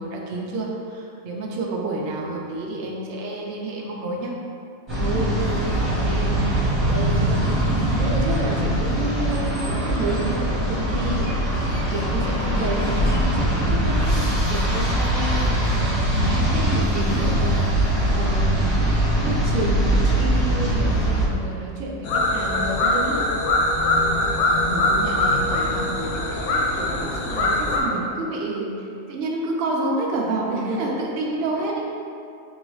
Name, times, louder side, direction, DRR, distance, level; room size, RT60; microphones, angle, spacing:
voice 1, 0.0-4.3 24.7-26.5 26.7-31.9, right 2 dB, 60° right, -2 dB, 0.7 m, -29 dB
sound 1, 4.9-21.3, right 1 dB, 20° right, 1.3 m, -22 dB
voice 2, 4.9-16.0 16.3-23.3 30.5-30.9, right 2 dB, 80° right, -2 dB, 1.0 m, -31 dB
sound 2, 22.0-27.8, left 1 dB, 85° left, 1.1 m, -22 dB
4.0 x 3.8 x 3.1 m, 2.5 s
omnidirectional pair, 1.4 m